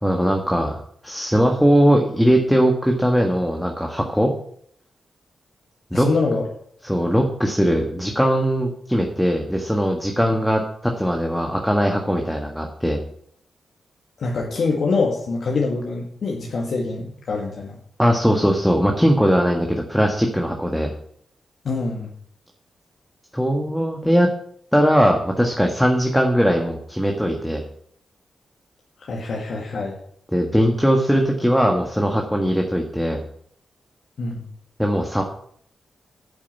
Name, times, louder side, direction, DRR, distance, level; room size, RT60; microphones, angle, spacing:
voice 1, 0.0-4.3 5.9-6.1 6.8-13.0 18.0-20.9 23.3-24.3 24.7-27.6 30.3-33.2 34.8-35.2, equal, ahead, 2 dB, 1.8 m, -20 dB
voice 2, 5.9-6.5 14.2-17.8 21.6-22.1 29.0-30.0 34.2-34.5, left 3 dB, 70° left, -2 dB, 2.2 m, -24 dB
9.9 x 7.4 x 8.4 m, 0.65 s
cardioid pair, 75°, 0 cm